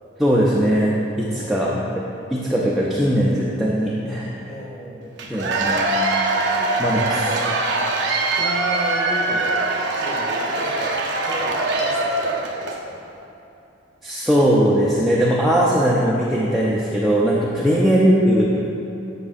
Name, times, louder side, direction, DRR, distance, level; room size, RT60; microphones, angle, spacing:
voice 1, 0.2-1.8 2.3-4.4 5.3-5.9 6.8-7.3 14.0-18.5, equal, ahead, -7 dB, 0.4 m, -19 dB
voice 2, 1.3-1.9 4.4-5.2 6.6-6.7 7.1-7.6 8.3-13.0 17.6-17.8, equal, 15° left, -5 dB, 1.2 m, -34 dB
Cheering / Applause / Crowd, 5.2-12.8, right 2 dB, 60° right, 0.6 m, -22 dB
9.4 x 5.5 x 2.5 m, 2.9 s
head